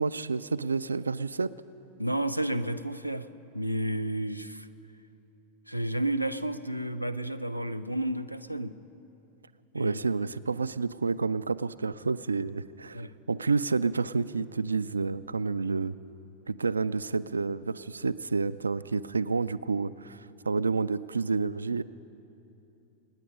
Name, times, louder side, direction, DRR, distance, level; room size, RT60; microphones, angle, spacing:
voice 1, 0.0-1.5 9.7-16.0 16.5-21.8, right 4 dB, 75° right, 16 dB, 0.3 m, -29 dB
voice 2, 2.0-3.3 3.5-4.7 5.7-8.8 9.7-10.2 12.9-13.2, right 1 dB, 90° left, 14 dB, 0.4 m, -31 dB
26.0 x 9.7 x 5.4 m, 2.9 s
figure-of-eight pair, 90°, 0 cm